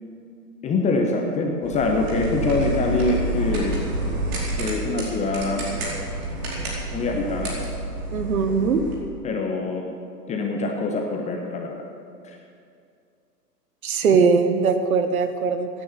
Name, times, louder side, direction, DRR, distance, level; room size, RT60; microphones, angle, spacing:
voice 1, 0.6-3.9 4.6-5.6 6.9-7.5 9.2-9.9 10.3-11.8 12.2-12.4, left 3 dB, 15° left, 2 dB, 1.0 m, -24 dB
sound 1, 1.6-8.9, right 2 dB, 40° right, 4.6 m, -29 dB
voice 2, 8.1-8.8 13.8-15.7, right 5 dB, 60° right, 8 dB, 1.5 m, -20 dB
17.0 x 9.8 x 6.8 m, 2.4 s
figure-of-eight pair, 115°, 48 cm